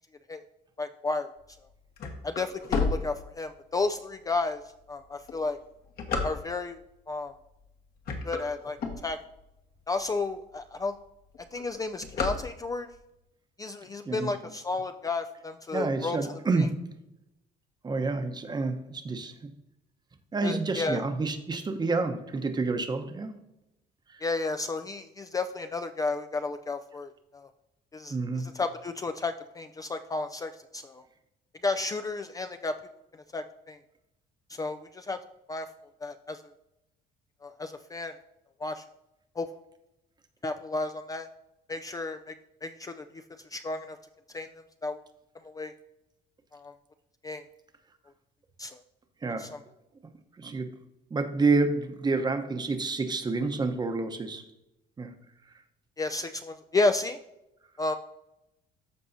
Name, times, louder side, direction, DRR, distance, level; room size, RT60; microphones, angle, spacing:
voice 1, 0.8-1.3 2.2-2.5 2.8-4.6 4.9-5.6 6.2-6.8 7.1-7.3 8.2-8.8 9.0-9.2 9.9-11.0 11.5-12.9 13.6-16.7 20.4-21.0 24.2-27.5 27.9-31.0 31.6-32.8 33.3-33.8 34.6-35.2 35.5-35.7 36.0-36.4 37.4-38.1 38.6-38.8 39.4-39.5 40.4-41.3 41.7-42.3 42.6-43.0 43.5-44.0 44.3-44.5 44.8-45.0 45.4-45.7 46.5-46.7 47.2-47.4 48.6-48.8 49.4-49.6 56.0-57.2 57.8-57.9, left 3 dB, 20° left, 8 dB, 0.4 m, -32 dB
sound 1, 1.5-3.8 4.4-4.5 5.1-6.8 7.5-7.7 8.0-9.5 10.0-10.1 10.3-10.4 10.7-11.1 11.3-13.0, left 4 dB, 65° left, 1.5 m, -32 dB
voice 2, 15.7-16.8 17.8-19.3 20.3-23.3 24.1-24.3 28.1-28.4 49.2-49.5 50.4-50.7 51.1-54.4 55.0-55.1, right 3 dB, 25° right, 8 dB, 0.9 m, -28 dB
13.5 x 4.7 x 2.7 m, 0.90 s
cardioid pair, 110°, 17 cm